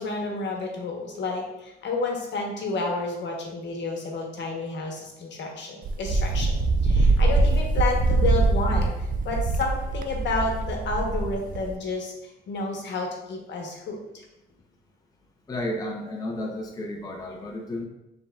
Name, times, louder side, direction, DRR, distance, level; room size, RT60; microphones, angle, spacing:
voice 1, 0.0-8.9 9.2-12.1 12.5-14.0, left 3 dB, 65° left, 0 dB, 1.0 m, -30 dB
Wind, 5.8-11.8, right 3 dB, 45° right, 0.4 m, -23 dB
voice 2, 15.5-17.8, left 1 dB, 20° left, 1 dB, 0.5 m, -32 dB
4.8 x 3.5 x 2.3 m, 0.93 s
cardioid pair, 90°, 20 cm